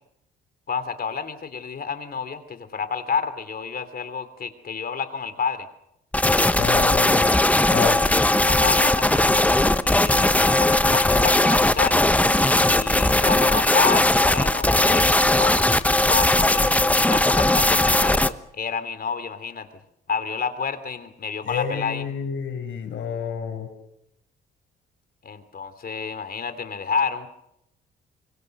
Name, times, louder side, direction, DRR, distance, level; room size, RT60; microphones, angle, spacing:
voice 1, 0.7-5.7 8.4-9.4 9.8-12.1 12.7-15.7 16.1-18.2 18.5-19.7 20.1-22.0 25.2-27.3, left 6 dB, 50° left, 11 dB, 3.0 m, -29 dB
sound 1, 6.1-18.3, left 1 dB, 5° left, 1.1 m, -19 dB
voice 2, 6.6-7.3 7.7-8.0 21.4-23.7, left 7 dB, 70° left, 6 dB, 5.9 m, -29 dB
26.0 x 23.5 x 6.6 m, 0.82 s
cardioid pair, 90°, 20 cm